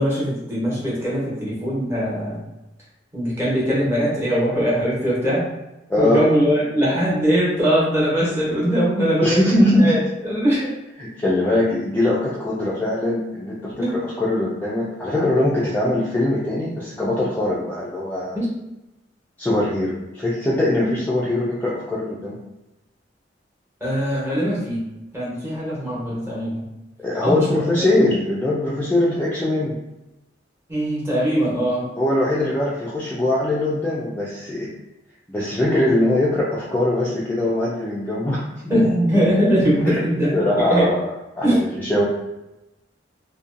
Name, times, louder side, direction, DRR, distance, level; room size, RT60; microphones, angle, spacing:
voice 1, 0.0-2.4 3.1-5.4 6.0-10.7 13.7-13.9 18.3-18.5 23.8-24.9 25.1-26.6 27.2-27.5 27.8-27.9 30.7-31.9 38.7-40.8 41.4-41.6, equal, 15° right, -7 dB, 1.0 m, -21 dB
voice 2, 5.9-6.3 9.2-10.0 11.0-18.4 19.4-22.4 27.0-29.8 32.0-34.7 35.3-38.5 39.9-40.0 40.3-42.0, left 1 dB, 10° left, -6 dB, 0.3 m, -21 dB
2.6 x 2.2 x 2.5 m, 0.96 s
head